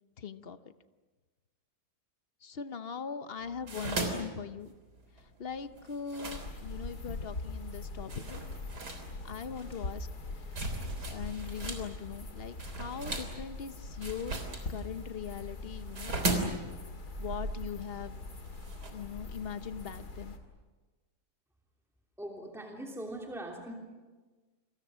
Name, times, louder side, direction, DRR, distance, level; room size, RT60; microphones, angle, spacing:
voice 1, 0.2-0.6 2.4-4.7 5.2-8.4 9.2-10.6 11.1-14.4 14.7-16.5 17.2-18.2 18.9-20.3, left 7 dB, 45° left, 11 dB, 1.0 m, -41 dB
sound 1, 3.4-7.0 7.6-7.7 8.1-11.9 12.1-18.9, right 2 dB, 85° right, 4.1 m, -37 dB
sound 2, 6.2-20.4, left 2 dB, 75° left, 3.0 m, -43 dB
voice 2, 22.2-23.7, right 1 dB, ahead, 0 dB, 3.0 m, -41 dB
29.5 x 24.0 x 6.3 m, 1.3 s
omnidirectional pair, 1.7 m